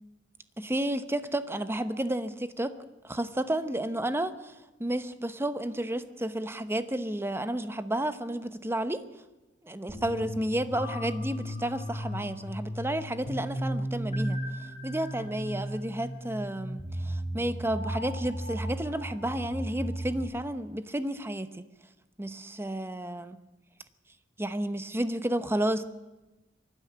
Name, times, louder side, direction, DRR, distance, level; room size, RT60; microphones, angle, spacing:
voice 1, 0.6-2.8 3.1-9.0 9.6-14.4 14.8-21.6 22.2-23.4 24.4-25.8, right 1 dB, 15° right, 11 dB, 1.0 m, -31 dB
sound 1, 9.9-20.2, equal, 40° left, 4.4 m, -35 dB
23.5 x 12.5 x 9.5 m, 1.1 s
head